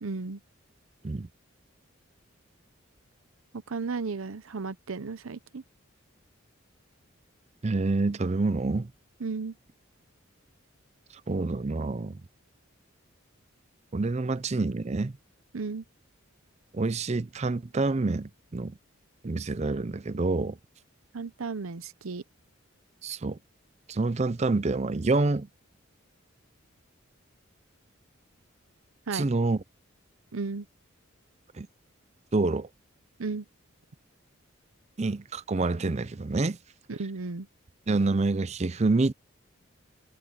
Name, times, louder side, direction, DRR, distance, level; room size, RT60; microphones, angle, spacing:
voice 1, 0.0-0.4 3.5-5.6 9.2-9.5 15.5-15.8 21.1-22.2 29.1-29.2 30.3-30.7 33.2-33.4 36.9-37.5, right 4 dB, 85° right, 0.8 m, -34 dB
voice 2, 7.6-8.9 11.3-12.2 13.9-15.1 16.7-18.7 19.2-20.6 23.0-23.4 23.9-25.5 29.1-29.6 31.6-31.7 32.3-32.7 35.0-36.6 37.9-39.1, right 3 dB, 30° right, 0.5 m, -27 dB
head